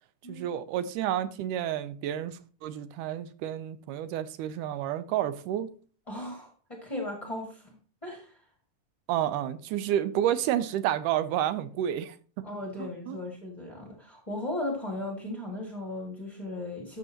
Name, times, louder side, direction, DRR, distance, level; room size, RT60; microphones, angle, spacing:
voice 1, 0.3-5.7 9.1-12.5 12.8-13.2, right 11 dB, 80° right, 2.1 m, -30 dB
voice 2, 6.1-7.7 8.0-8.4 12.4-17.0, left 1 dB, 20° left, 1.0 m, -36 dB
13.0 x 6.3 x 2.9 m
omnidirectional pair, 3.7 m